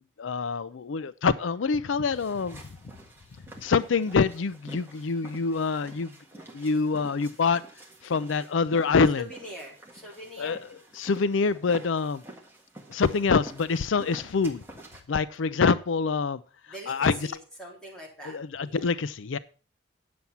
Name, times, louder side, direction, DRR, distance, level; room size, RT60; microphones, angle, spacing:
voice 1, 0.2-2.6 3.6-6.1 6.5-7.6 8.0-9.2 10.4-10.6 10.9-12.2 12.9-14.6 15.1-16.4 16.9-17.1 18.2-19.4, left 5 dB, 80° left, 0.5 m, -25 dB
sound 1, 2.1-15.0, right 1 dB, 10° right, 1.6 m, -48 dB
voice 2, 9.2-10.6 16.7-18.4 18.6-18.9, left 1 dB, 5° left, 3.5 m, -42 dB
9.4 x 7.2 x 5.6 m
head